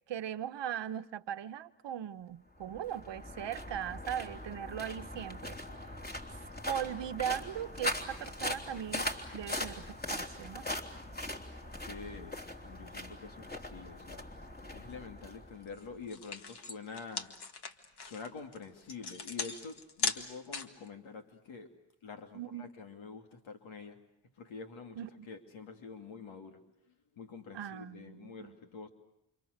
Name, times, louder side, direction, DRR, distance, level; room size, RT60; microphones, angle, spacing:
voice 1, 0.1-5.6 6.6-10.6 22.3-22.7 24.9-25.3 27.5-28.6, right 10 dB, 65° right, 1.1 m, -39 dB
sound 1, 2.6-16.0, left 1 dB, 20° left, 3.4 m, -41 dB
voice 2, 11.6-14.3 14.7-17.3 18.0-21.7 22.0-24.0 24.4-25.0 25.3-26.6 27.2-28.9, left 5 dB, 80° left, 2.8 m, -47 dB
sound 2, 15.7-15.8 16.1-20.9, left 4 dB, 55° left, 2.0 m, -38 dB
29.5 x 27.0 x 6.7 m
cardioid pair, 75°, 46 cm